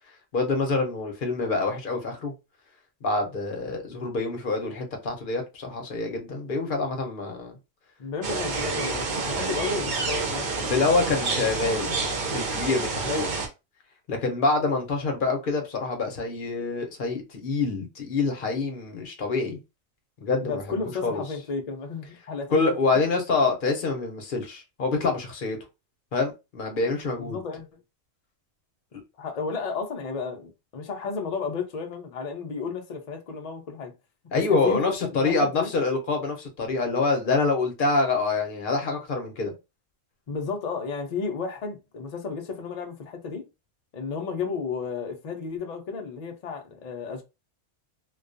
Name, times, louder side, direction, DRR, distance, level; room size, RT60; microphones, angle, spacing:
voice 1, 0.3-2.3 3.0-7.6 10.7-12.0 12.3-13.3 14.1-19.6 20.2-21.2 22.5-25.6 26.1-27.4 34.3-39.5, left 3 dB, 50° left, 0.7 m, -26 dB
voice 2, 8.0-10.9 13.1-13.3 20.4-22.7 27.2-27.7 29.2-33.9 34.3-35.7 40.3-43.5 43.9-47.2, left 4 dB, 85° left, 0.3 m, -33 dB
sound 1, 8.2-13.5, right 3 dB, 50° right, 0.7 m, -28 dB
2.3 x 2.2 x 2.5 m
omnidirectional pair, 1.3 m